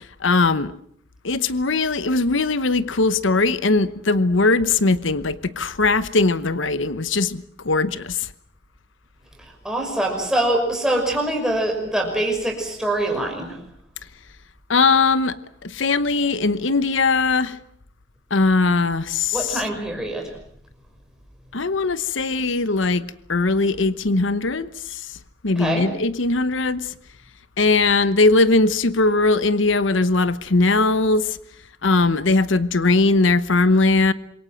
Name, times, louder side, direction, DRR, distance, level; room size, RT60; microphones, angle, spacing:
voice 1, 0.2-0.7 1.2-8.3 14.7-17.6 18.3-19.6 21.5-25.0 25.4-26.9 27.6-31.4 31.8-34.1, left 3 dB, 80° left, 1.0 m, -20 dB
voice 2, 9.6-13.6 19.3-20.3 25.6-25.9, right 1 dB, 5° right, 5.7 m, -24 dB
27.0 x 23.5 x 7.7 m
head